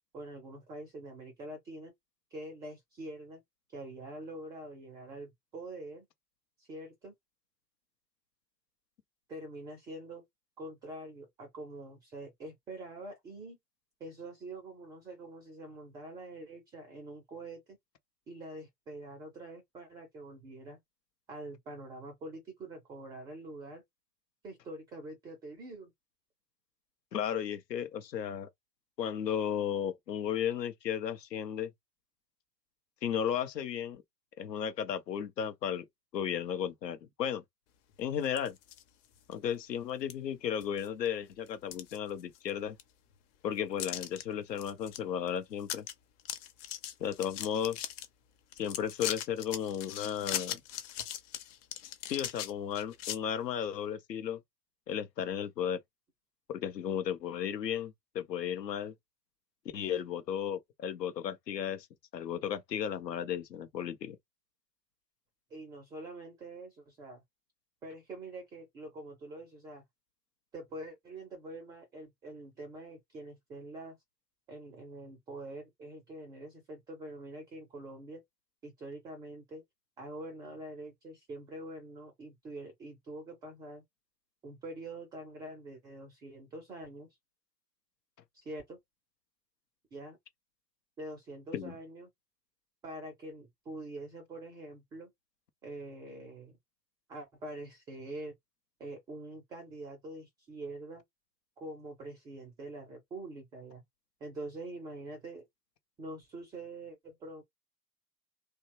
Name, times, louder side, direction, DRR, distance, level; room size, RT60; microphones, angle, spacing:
voice 1, 0.1-1.9 2.3-3.4 3.7-6.1 6.6-7.1 9.3-10.2 10.6-13.6 14.0-17.8 18.3-20.8 21.3-23.8 24.4-25.9 65.5-67.2 67.8-69.8 70.5-74.0 74.5-78.2 78.6-79.6 80.0-83.8 84.4-87.1 88.3-88.8 89.9-90.2 91.0-92.1 92.8-95.1 95.6-96.6 97.1-98.3 98.8-101.0 101.6-103.8 104.2-105.4 106.0-107.4, right 2 dB, 10° right, 0.3 m, -45 dB
voice 2, 27.1-28.5 29.0-31.7 33.0-34.0 34.4-35.8 36.1-37.4 38.0-38.6 39.3-42.8 43.4-45.9 47.0-47.8 48.6-50.6 52.1-54.4 54.9-55.8 56.5-58.9 59.7-61.9 62.1-64.2 91.5-91.7, left 9 dB, 80° left, 0.7 m, -34 dB
sound 1, 38.2-38.8 39.3-39.4 40.1-40.2 40.6-41.1 41.5-42.5 42.8-42.9 43.8-44.2 44.6-45.0 45.3-45.4 45.6-45.9 46.2-48.1 48.5-53.2, left 11 dB, 50° left, 0.8 m, -39 dB
2.8 x 2.2 x 3.0 m
figure-of-eight pair, 90°, 49 cm